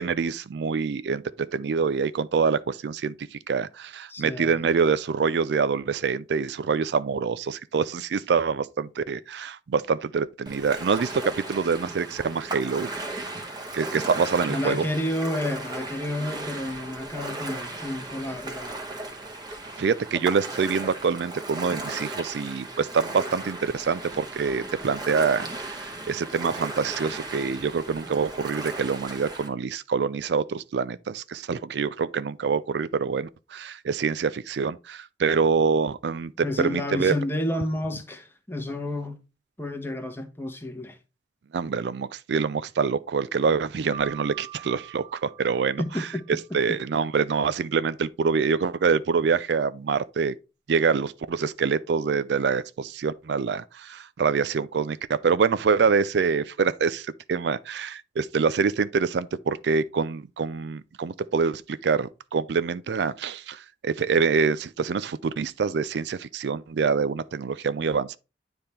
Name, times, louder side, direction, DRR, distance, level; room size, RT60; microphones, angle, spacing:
voice 1, 0.0-12.9 13.7-14.8 19.8-37.1 41.5-46.1 46.5-50.3 50.7-68.2, right 5 dB, 70° right, 0.4 m, -25 dB
voice 2, 4.1-4.5 14.5-18.8 36.4-39.2 39.6-41.0 45.8-46.3, left 1 dB, 15° left, 1.0 m, -30 dB
Ocean, 10.5-29.5, right 2 dB, 25° right, 1.2 m, -36 dB
Keyboard (musical), 43.9-46.5, right 10 dB, 45° left, 1.5 m, -44 dB
9.7 x 3.5 x 4.3 m
head